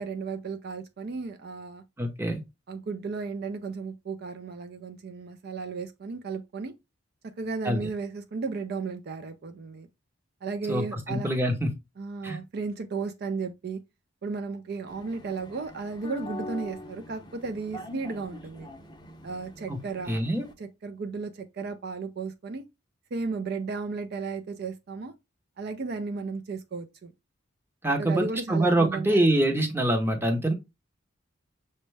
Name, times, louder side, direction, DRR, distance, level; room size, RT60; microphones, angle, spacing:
voice 1, 0.0-1.8 2.7-6.7 7.4-9.9 10.4-11.3 12.0-13.8 14.2-18.7 19.2-20.2 20.6-22.7 23.1-25.1 25.6-27.1 28.0-29.3 29.5-29.6, right 4 dB, 55° right, 0.4 m, -34 dB
voice 2, 2.0-2.4 7.6-7.8 10.7-11.7 12.2-12.4 19.7-19.8 20.1-20.5 27.8-30.5, right 1 dB, 10° right, 0.7 m, -25 dB
sound 1, 14.9-20.5, left 1 dB, 20° left, 0.6 m, -43 dB
6.1 x 2.2 x 3.2 m
head